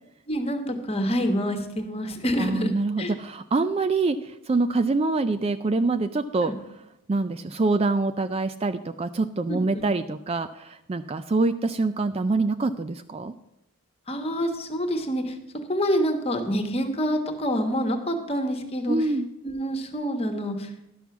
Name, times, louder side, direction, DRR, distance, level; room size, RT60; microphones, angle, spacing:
voice 1, 0.3-3.1 6.4-6.5 9.5-9.8 14.1-15.4 15.7-19.0 19.4-20.7, equal, 25° left, 6 dB, 1.2 m, -27 dB
voice 2, 2.4-6.5 7.1-13.3 18.9-19.3, right 3 dB, 25° right, 10 dB, 0.3 m, -25 dB
11.5 x 6.3 x 7.0 m, 0.86 s
head